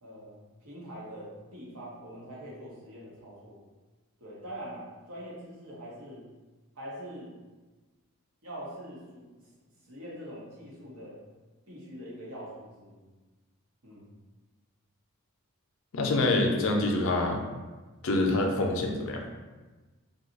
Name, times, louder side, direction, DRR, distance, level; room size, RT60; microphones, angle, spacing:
voice 1, 0.0-3.6 4.2-6.2 6.8-7.3 8.4-9.4 9.8-11.2 11.7-13.1 13.8-14.1, equal, 75° right, -5 dB, 1.0 m, -43 dB
voice 2, 15.9-17.4 18.0-19.3, left 2 dB, 60° left, 2 dB, 0.5 m, -26 dB
2.7 x 2.3 x 3.9 m, 1.2 s
head